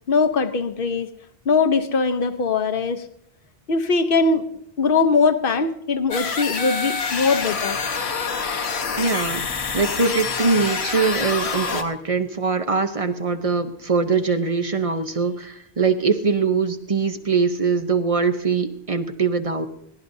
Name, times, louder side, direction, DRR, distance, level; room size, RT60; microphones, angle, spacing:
voice 1, 0.1-1.1 1.5-3.0 3.7-4.5 4.8-7.8, left 4 dB, 60° left, 9 dB, 1.0 m, -21 dB
sound 1, 6.1-11.8, left 5 dB, 80° left, 1.4 m, -26 dB
voice 2, 9.0-9.4 9.7-19.7, right 4 dB, 35° right, 7 dB, 0.8 m, -22 dB
21.5 x 17.0 x 2.7 m, 0.74 s
omnidirectional pair, 1.1 m